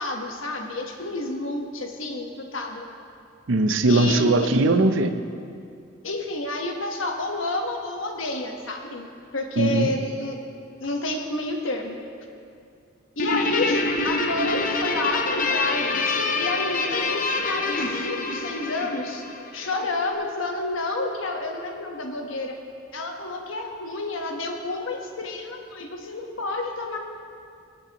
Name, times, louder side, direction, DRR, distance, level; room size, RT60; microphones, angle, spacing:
voice 1, 0.0-2.8 3.9-4.3 6.0-10.4 10.8-12.0 13.2-19.2 19.5-22.6 22.9-27.0, left 2 dB, 75° left, 2 dB, 1.2 m, -29 dB
voice 2, 3.5-5.1 9.6-9.9, right 2 dB, 70° right, 9 dB, 0.6 m, -20 dB
Guitar, 13.2-19.9, left 3 dB, 45° left, 0.7 m, -26 dB
19.0 x 8.7 x 3.0 m, 2.4 s
head